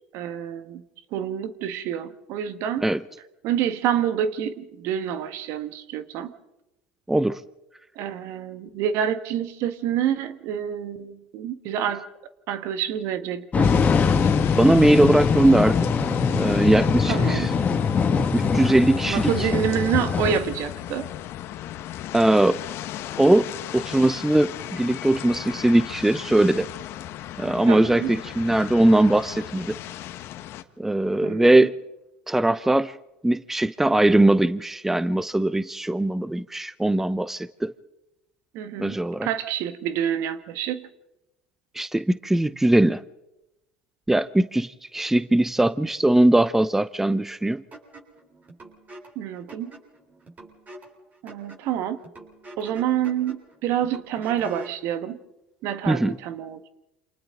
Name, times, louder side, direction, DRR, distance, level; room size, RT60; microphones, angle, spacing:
voice 1, 0.1-0.8 1.1-2.9 3.4-6.3 8.0-12.1 12.5-13.8 17.1-17.5 19.1-21.1 27.7-28.1 31.2-31.7 38.5-40.9 49.2-49.7 51.2-52.0 52.6-55.2 55.6-56.7, right 9 dB, 60° right, 1.8 m, -27 dB
voice 2, 7.1-7.4 14.6-15.9 16.4-17.5 18.3-19.5 22.1-22.6 23.2-23.5 23.7-26.7 27.4-29.8 30.8-31.7 32.3-33.0 33.2-37.7 38.8-39.3 41.7-43.0 44.1-47.6 55.9-56.2, right 1 dB, 5° right, 0.7 m, -20 dB
sound 1, 13.5-20.4, left 5 dB, 30° left, 1.8 m, -22 dB
sound 2, 13.6-30.6, left 12 dB, 55° left, 1.4 m, -35 dB
sound 3, 47.7-54.8, right 1 dB, 30° right, 7.6 m, -45 dB
28.5 x 27.5 x 3.9 m
hypercardioid pair, 80°, 5 cm